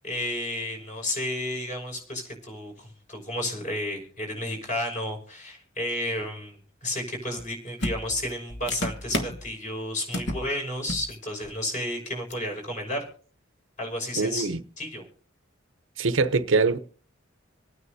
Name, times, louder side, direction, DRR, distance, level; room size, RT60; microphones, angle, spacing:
voice 1, 0.0-6.6 6.8-13.1 13.8-14.5 14.8-15.1, left 1 dB, 40° left, 5.6 m, -32 dB
sound 1, 7.4-7.5 7.8-9.5 10.1-10.5 10.8-11.1 11.4-11.6 12.3-12.4, left 1 dB, 60° left, 1.3 m, -31 dB
voice 2, 14.2-14.6 16.0-16.8, right 4 dB, 70° right, 0.7 m, -23 dB
27.0 x 9.5 x 2.7 m
head